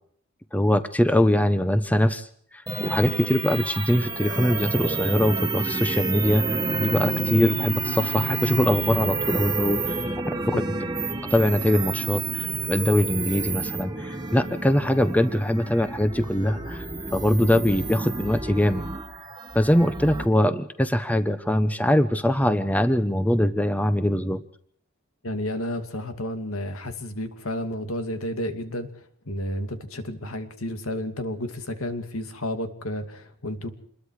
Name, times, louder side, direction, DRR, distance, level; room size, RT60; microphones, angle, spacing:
voice 1, 0.5-10.0 10.6-10.7 11.2-16.9 17.1-18.9 19.5-24.4, left 1 dB, 5° left, 10 dB, 1.0 m, -22 dB
sound 1, 2.7-20.3, right 3 dB, 20° right, 1.6 m, -29 dB
voice 2, 25.2-28.9 29.3-33.7, left 1 dB, 90° left, 7 dB, 2.7 m, -31 dB
27.5 x 21.5 x 4.9 m, 0.64 s
head